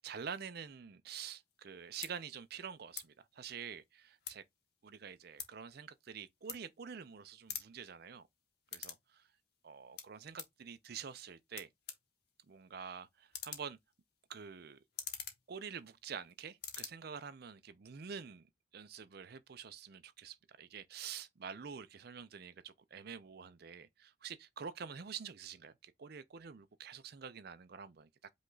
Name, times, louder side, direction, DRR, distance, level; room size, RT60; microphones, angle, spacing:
voice 1, 0.0-4.4 4.8-8.3 8.7-9.2 9.6-11.7 12.5-13.8 14.3-14.8 15.5-28.1, right 7 dB, 50° right, 0.5 m, -47 dB
sound 1, 1.5-1.6 2.0-2.1 2.9-3.1 3.4-4.6 4.9-7.1 7.4-9.0 9.3-10.6 11.2-11.3 11.5-16.2 16.5-16.9, left 8 dB, 50° left, 0.9 m, -47 dB
5.2 x 2.3 x 3.8 m
head